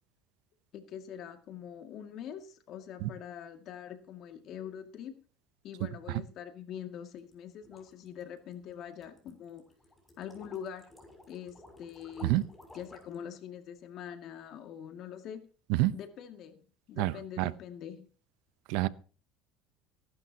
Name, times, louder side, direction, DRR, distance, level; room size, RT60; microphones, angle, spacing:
voice 1, 0.7-5.2 5.6-9.6 10.2-10.9 11.3-12.4 12.7-15.4 15.9-16.6 16.9-18.1, left 9 dB, 55° left, 2.2 m, -44 dB
sound 1, 7.2-13.2, left 1 dB, 10° left, 6.1 m, -55 dB
voice 2, 17.0-17.5 18.7-18.9, right 17 dB, 75° right, 0.7 m, -28 dB
21.0 x 11.5 x 2.9 m
supercardioid pair, 110°, 0 cm